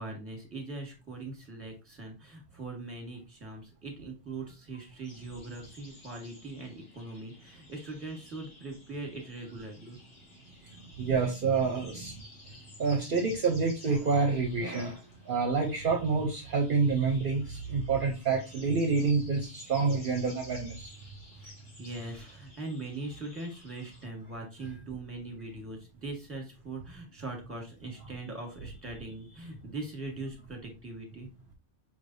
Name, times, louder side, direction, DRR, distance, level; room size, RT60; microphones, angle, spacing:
voice 1, 0.0-10.0 21.4-21.5 21.8-31.3, right 2 dB, 10° right, 0 dB, 1.4 m, -41 dB
sound 1, 5.0-24.0, left 1 dB, 90° left, 1.9 m, -53 dB
voice 2, 11.0-12.2 12.8-20.9, right 4 dB, 55° right, 2 dB, 0.8 m, -28 dB
5.4 x 3.3 x 2.6 m, 0.29 s
omnidirectional pair, 1.2 m